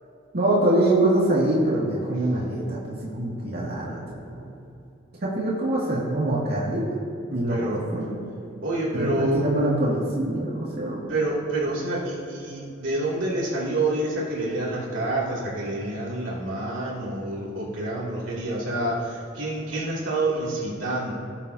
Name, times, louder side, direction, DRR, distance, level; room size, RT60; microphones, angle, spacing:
voice 1, 0.3-4.5 5.2-6.8 7.3-8.2 8.9-11.1, right 1 dB, 55° right, -6 dB, 2.1 m, -24 dB
voice 2, 7.5-7.8 8.6-9.4 11.1-21.1, right 2 dB, 75° right, -5 dB, 2.5 m, -27 dB
18.0 x 7.4 x 2.7 m, 2.7 s
head